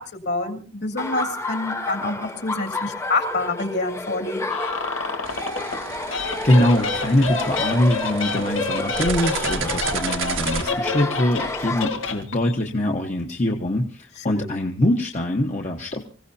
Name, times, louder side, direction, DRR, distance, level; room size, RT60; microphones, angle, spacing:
voice 1, 0.1-4.5 14.3-14.5, left 2 dB, 55° left, 3 dB, 2.8 m, -27 dB
Laughter, 1.0-11.9, left 2 dB, 15° left, 0.7 m, -30 dB
sound 1, 4.5-5.8 6.1-12.5, left 4 dB, 85° left, 1.7 m, -29 dB
sound 2, 5.2-10.7, right 5 dB, 80° right, 1.6 m, -32 dB
voice 2, 6.4-16.0, left 1 dB, 35° left, 1 dB, 1.2 m, -23 dB
25.5 x 16.5 x 2.8 m, 0.40 s
head